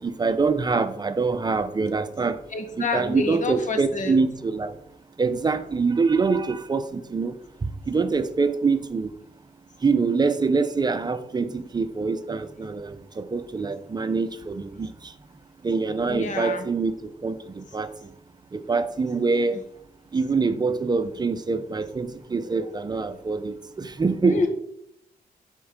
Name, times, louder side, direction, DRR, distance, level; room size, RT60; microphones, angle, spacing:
voice 1, 0.0-2.4 2.8-4.7 5.2-7.4 7.9-9.1 9.8-15.1 15.6-17.9 18.5-19.6 20.1-24.5, right 4 dB, 25° right, 11 dB, 0.7 m, -25 dB
voice 2, 2.5-4.2 16.1-16.6 19.5-19.6 24.2-24.5, left 4 dB, 55° left, 6 dB, 1.7 m, -28 dB
9.2 x 4.5 x 6.4 m, 0.74 s
cardioid pair, 115°, 16 cm